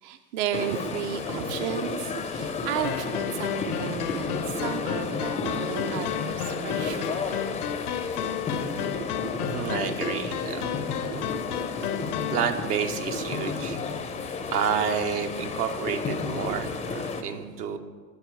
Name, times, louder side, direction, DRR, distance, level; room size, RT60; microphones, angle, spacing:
voice 1, 0.0-7.5 11.2-11.3 16.4-16.6, right 10 dB, 50° right, 9 dB, 0.5 m, -34 dB
sound 1, 0.5-17.2, left 4 dB, 15° left, 0.4 m, -32 dB
sound 2, 2.8-12.4, left 9 dB, 70° left, 0.6 m, -33 dB
voice 2, 9.4-10.8 12.3-13.8 14.5-17.8, right 7 dB, 70° right, 6 dB, 0.9 m, -29 dB
10.5 x 4.1 x 4.7 m, 1.4 s
hypercardioid pair, 85°, 47 cm